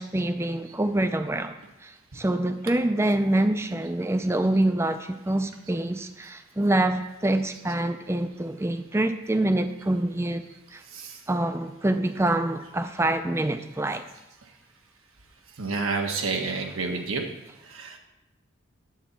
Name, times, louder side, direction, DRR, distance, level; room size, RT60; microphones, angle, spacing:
voice 1, 0.0-1.6 1.8-10.4 10.7-10.8 11.3-14.0 16.8-16.9, right 1 dB, 10° right, 9 dB, 0.4 m, -26 dB
voice 2, 15.6-17.2 17.7-18.0, right 4 dB, 80° right, 3 dB, 1.1 m, -29 dB
9.5 x 4.0 x 7.2 m, 0.94 s
head